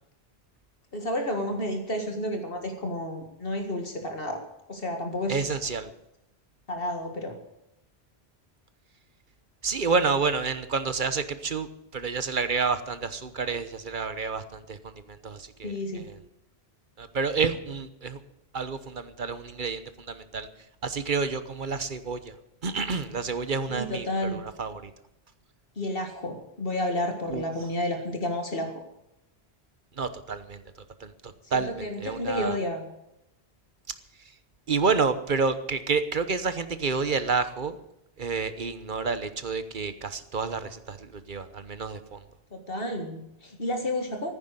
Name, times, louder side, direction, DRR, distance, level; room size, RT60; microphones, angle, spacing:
voice 1, 0.9-4.4 4.7-5.6 6.7-7.3 15.6-16.1 23.7-24.4 25.8-28.8 31.5-32.9 42.5-44.3, left 1 dB, 65° left, 4 dB, 2.0 m, -31 dB
voice 2, 5.3-5.9 9.6-11.7 11.9-16.1 17.0-18.2 18.5-20.5 20.8-22.3 22.6-24.9 27.3-27.4 30.0-30.6 31.0-32.6 34.7-37.8 38.2-42.2, right 4 dB, 50° right, 11 dB, 1.2 m, -29 dB
15.0 x 9.6 x 8.0 m, 0.84 s
omnidirectional pair, 1.1 m